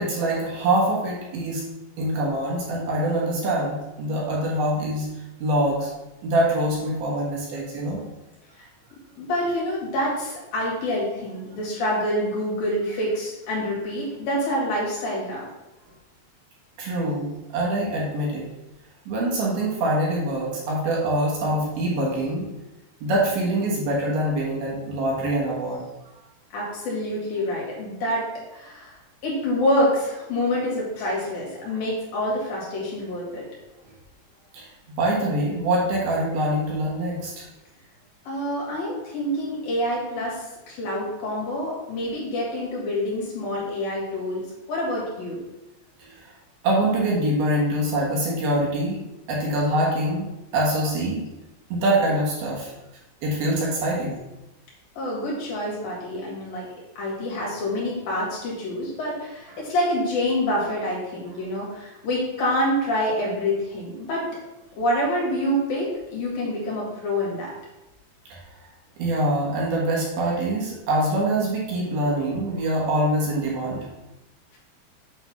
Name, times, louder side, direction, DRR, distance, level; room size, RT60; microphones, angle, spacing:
voice 1, 0.0-1.6 2.0-5.1 5.4-5.9 6.2-8.0 16.8-18.4 19.1-22.5 23.0-25.8 34.5-34.7 35.0-37.5 46.0-46.1 46.6-49.0 49.3-50.3 50.5-51.2 51.7-52.7 53.2-54.2 59.5-59.6 68.3-68.4 69.0-73.9, right 1 dB, 65° right, -4 dB, 3.1 m, -24 dB
voice 2, 9.2-15.4 26.5-28.2 28.5-29.0 29.2-33.4 38.3-44.4 44.7-45.4 55.0-56.7 57.0-64.2 64.8-67.5, left 1 dB, 60° left, -5 dB, 3.6 m, -27 dB
8.3 x 3.9 x 5.8 m, 1.0 s
omnidirectional pair, 5.1 m